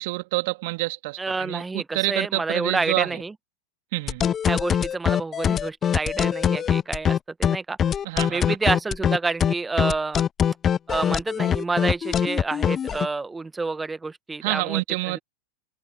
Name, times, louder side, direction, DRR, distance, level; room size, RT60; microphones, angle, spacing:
voice 1, 0.0-3.2 3.9-4.3 8.0-8.6 14.4-15.2, right 23 dB, 50° right, 2.9 m, -28 dB
voice 2, 1.2-3.3 4.4-7.8 8.3-10.2 10.9-14.8, right 3 dB, 10° right, 1.7 m, -28 dB
sound 1, 4.1-13.1, left 8 dB, 25° left, 0.7 m, -22 dB
figure-of-eight pair, 90°, 0 cm